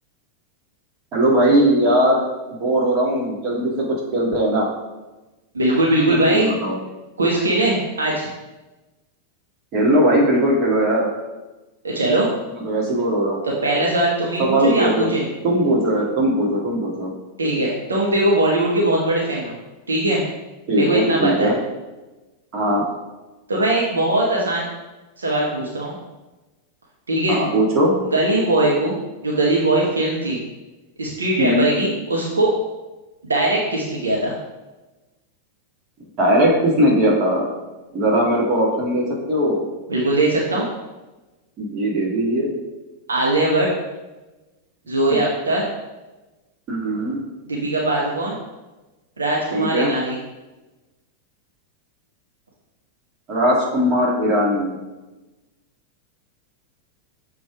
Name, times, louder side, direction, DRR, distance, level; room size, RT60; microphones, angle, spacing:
voice 1, 1.1-2.3 2.6-3.9 4.1-4.7 6.1-6.8 9.7-11.1 12.6-13.4 14.4-15.1 15.4-17.1 20.7-21.5 22.5-22.8 27.3-28.0 31.4-31.7 36.2-37.5 37.9-39.7 41.6-42.5 45.1-45.3 46.7-47.2 49.5-49.9 53.3-54.8, right 1 dB, 35° right, -3 dB, 1.9 m, -19 dB
voice 2, 5.5-6.5 7.2-8.3 11.8-12.3 13.4-15.3 17.4-19.5 19.9-20.2 20.8-21.5 23.5-24.6 25.2-26.0 27.1-27.4 28.1-29.0 29.2-30.4 31.0-32.5 33.2-34.3 39.9-40.6 43.1-43.7 44.9-45.7 47.5-48.3 49.2-50.2, right 1 dB, 75° right, -3 dB, 1.1 m, -20 dB
7.2 x 3.4 x 4.7 m, 1.1 s
figure-of-eight pair, 90°, 0 cm